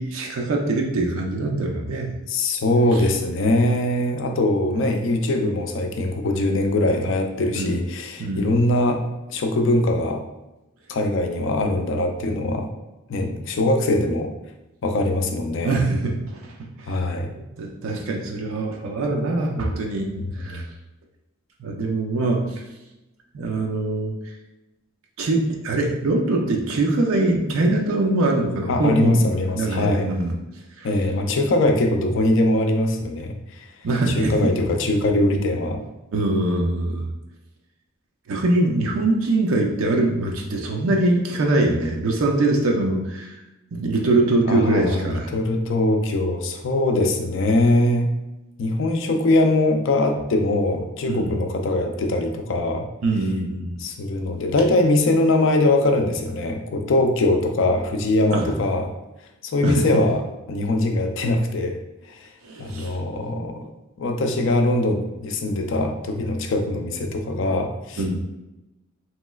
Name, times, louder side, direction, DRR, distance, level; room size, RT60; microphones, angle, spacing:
voice 1, 0.0-2.1 2.9-3.0 7.5-7.8 8.2-8.5 15.6-17.1 17.3-20.1 20.4-20.7 21.6-22.6 23.3-24.1 25.2-29.2 29.6-30.3 30.8-30.9 33.8-34.3 36.1-37.1 38.3-43.4 43.7-45.3 51.1-51.3 53.0-53.8 58.3-58.4 59.6-59.9 62.4-63.0 68.0-68.2, right 2 dB, 75° right, 1 dB, 0.5 m, -23 dB
voice 2, 2.3-9.0 9.3-10.2 10.9-12.7 13.1-14.3 14.8-15.7 16.9-17.3 20.5-20.7 28.7-30.1 30.8-33.6 34.1-35.8 44.5-48.1 48.6-52.9 53.8-58.9 59.4-60.2 60.5-61.8 62.1-62.3 62.6-63.7 64.0-68.0, left 2 dB, 65° left, 4 dB, 0.4 m, -22 dB
3.0 x 3.0 x 2.3 m, 0.97 s
head